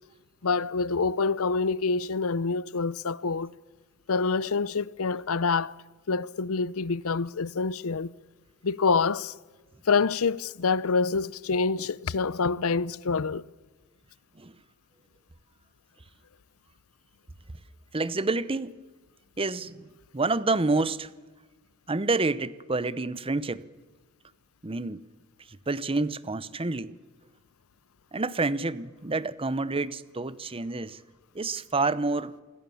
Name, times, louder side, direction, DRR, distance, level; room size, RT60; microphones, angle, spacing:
voice 1, 0.4-3.5 4.1-5.8 6.1-8.1 8.6-9.3 9.9-13.4, left 4 dB, 70° left, 0.7 m, -26 dB
voice 2, 17.9-18.8 19.4-19.9 20.1-21.1 21.9-23.6 24.6-25.0 25.7-26.9 28.1-31.0 31.3-32.4, right 3 dB, 25° right, 0.9 m, -28 dB
27.5 x 21.5 x 7.1 m
head